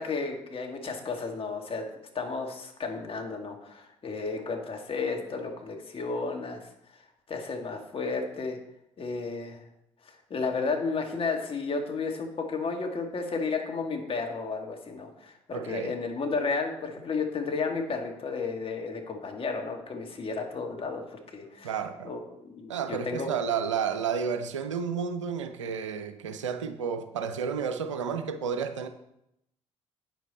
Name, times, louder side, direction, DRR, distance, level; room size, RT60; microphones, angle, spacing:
voice 1, 0.0-1.8 2.1-6.7 7.3-8.6 9.0-9.6 10.0-21.7 22.0-23.3, left 4 dB, 35° left, 2 dB, 2.0 m, -33 dB
voice 2, 15.5-16.0 21.6-22.1 22.7-28.9, right 6 dB, 85° right, 10 dB, 0.6 m, -31 dB
9.0 x 8.2 x 4.1 m, 0.81 s
hypercardioid pair, 50°, 15 cm